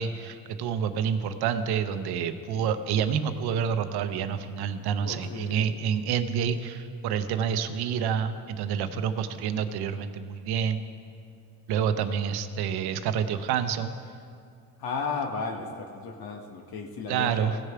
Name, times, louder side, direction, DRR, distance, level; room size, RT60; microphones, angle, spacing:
voice 1, 0.0-10.8 11.7-13.9 17.1-17.6, right 7 dB, 70° right, 10 dB, 0.8 m, -28 dB
voice 2, 5.0-5.7 14.8-17.6, left 4 dB, 65° left, 3 dB, 1.1 m, -34 dB
16.5 x 6.7 x 4.7 m, 2.4 s
cardioid pair, 110°, 39 cm